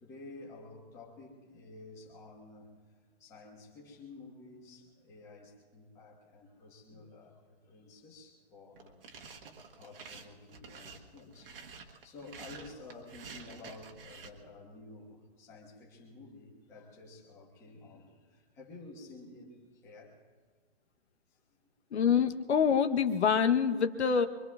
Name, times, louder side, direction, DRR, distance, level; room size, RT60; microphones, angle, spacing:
voice 1, 0.0-2.7 3.2-7.4 7.7-9.0 9.8-11.5 12.0-20.2, left 3 dB, 10° left, -3 dB, 1.3 m, -51 dB
sound 1, 8.8-14.3, right 5 dB, 55° right, 1.3 m, -49 dB
voice 2, 21.9-24.3, left 7 dB, 75° left, 7 dB, 1.0 m, -26 dB
24.0 x 24.0 x 2.4 m, 1.4 s
hypercardioid pair, 170°, 33 cm